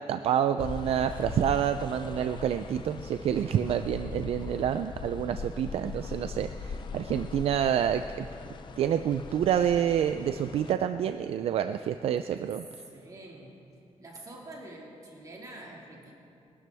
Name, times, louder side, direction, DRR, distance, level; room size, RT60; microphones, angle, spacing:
voice 1, 0.1-8.3 8.8-12.6, right 9 dB, 70° right, 9 dB, 0.4 m, -28 dB
sound 1, 0.6-10.7, left 5 dB, 50° left, 0.5 m, -41 dB
voice 2, 4.0-4.7 12.8-13.7 14.0-16.1, right 1 dB, 35° right, -2 dB, 2.1 m, -47 dB
22.5 x 12.0 x 3.5 m, 2.6 s
wide cardioid pair, 160°, 10 cm